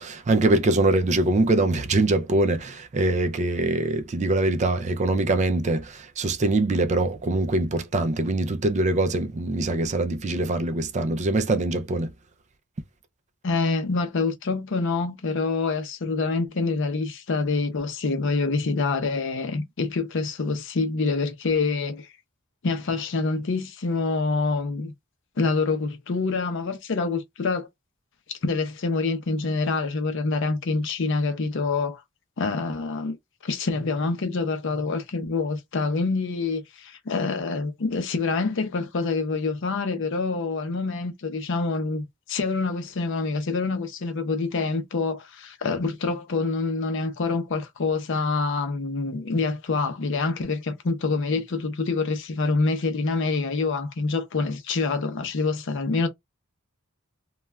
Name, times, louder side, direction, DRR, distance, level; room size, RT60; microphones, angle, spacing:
voice 1, 0.0-12.1, right 2 dB, 35° right, 0.4 m, -23 dB
voice 2, 13.4-22.1 22.6-24.9 25.4-27.7 28.3-32.0 32.4-33.2 33.4-56.1, left 3 dB, 60° left, 0.6 m, -26 dB
3.1 x 2.3 x 2.2 m
head